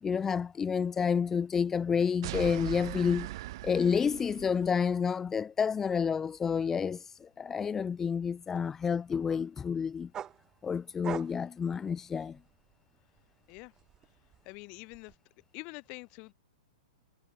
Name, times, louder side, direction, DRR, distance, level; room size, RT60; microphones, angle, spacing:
voice 1, 0.0-3.3 3.6-10.1 10.6-12.4, left 6 dB, 10° left, 0.4 m, -29 dB
sound 1, 2.2-4.8, right 17 dB, 45° right, 1.2 m, -40 dB
sound 2, 10.1-12.8 13.2-15.1, right 9 dB, 15° right, 4.1 m, -44 dB
voice 2, 14.4-15.2 15.5-16.3, left 30 dB, 30° left, 2.7 m, -45 dB
hypercardioid pair, 165°, 4 cm